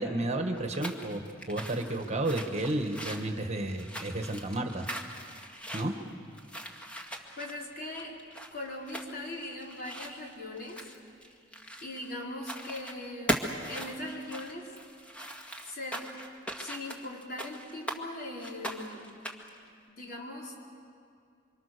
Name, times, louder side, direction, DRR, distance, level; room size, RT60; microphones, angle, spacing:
voice 1, 0.0-4.9 5.7-5.9, right 1 dB, 35° right, 5 dB, 1.6 m, -32 dB
sound 1, 0.5-12.1 12.4-13.0 13.3-18.0 18.4-19.6, equal, 5° left, 1.9 m, -39 dB
voice 2, 7.4-8.2 8.5-10.9 11.3-11.4 11.8-14.8 15.6-16.1 16.5-19.1 19.9-20.6, left 1 dB, 50° left, -2 dB, 4.5 m, -40 dB
27.5 x 25.0 x 6.8 m, 2.4 s
head